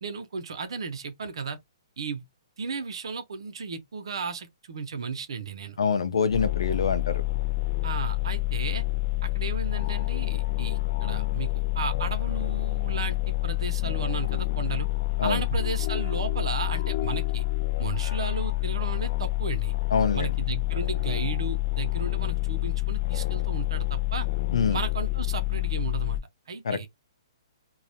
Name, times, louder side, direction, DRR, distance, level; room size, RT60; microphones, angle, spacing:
voice 1, 0.0-1.6 2.0-2.2 2.6-5.8 7.8-8.8 9.2-14.9 15.2-17.4 17.8-19.7 20.1-24.3 24.7-26.2 26.5-26.9, right 5 dB, 75° right, 0.6 m, -34 dB
voice 2, 5.8-7.2 15.2-15.4 19.9-20.3 24.5-24.8 26.6-26.8, left 5 dB, 80° left, 0.6 m, -25 dB
sound 1, 6.3-26.2, left 19 dB, 40° left, 0.3 m, -28 dB
2.3 x 2.1 x 2.8 m
hypercardioid pair, 155°, 3 cm